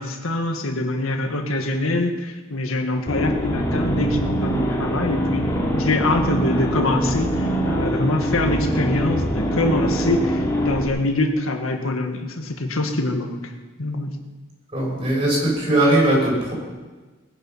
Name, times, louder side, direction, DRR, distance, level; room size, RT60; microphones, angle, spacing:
voice 1, 0.0-13.5 13.8-14.2, left 2 dB, 85° left, 4 dB, 1.8 m, -24 dB
sound 1, 3.1-10.9, equal, 15° left, 2.9 m, -23 dB
voice 2, 14.7-16.5, right 1 dB, 30° right, -5 dB, 6.7 m, -19 dB
19.5 x 10.5 x 5.7 m, 1.3 s
head